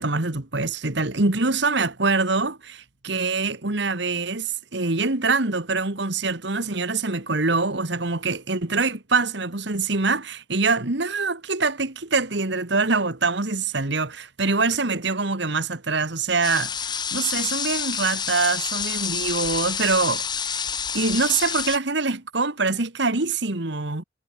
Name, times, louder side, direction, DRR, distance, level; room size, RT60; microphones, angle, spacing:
voice 1, 0.0-20.5 20.9-24.0, right 3 dB, 60° right, 1.7 m, -24 dB
sound 1, 16.4-21.8, left 7 dB, 20° left, 0.8 m, -28 dB
head